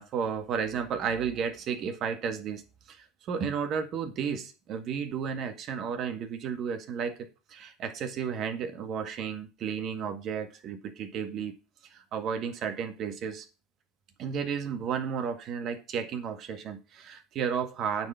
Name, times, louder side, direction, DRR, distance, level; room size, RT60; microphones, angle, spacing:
voice 1, 0.0-2.6 2.9-11.5 11.9-13.5 14.2-18.1, right 7 dB, 50° right, 1.8 m, -33 dB
9.3 x 4.7 x 7.1 m
supercardioid pair, 95°, 0 cm